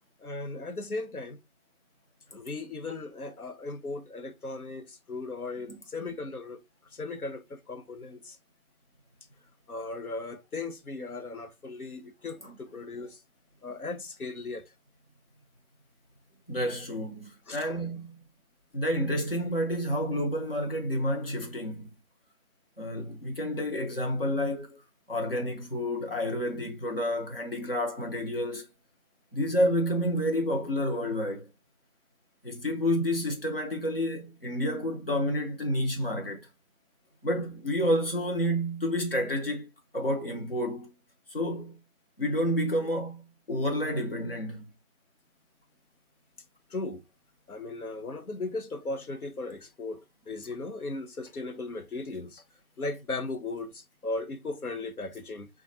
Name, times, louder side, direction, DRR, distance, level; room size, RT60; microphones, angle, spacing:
voice 1, 0.2-1.4 2.3-6.6 6.9-8.4 9.7-13.2 13.6-14.7 17.5-17.8 46.7-47.0 47.5-52.4 52.8-55.5, left 3 dB, 90° left, 0.9 m, -37 dB
voice 2, 16.5-18.2 18.7-21.9 22.8-24.8 25.1-28.6 29.3-31.5 32.4-36.5 37.2-39.7 39.9-40.9 41.3-41.8 42.2-44.7, equal, 40° left, 0.9 m, -29 dB
3.7 x 2.5 x 4.0 m
figure-of-eight pair, 175°, 43 cm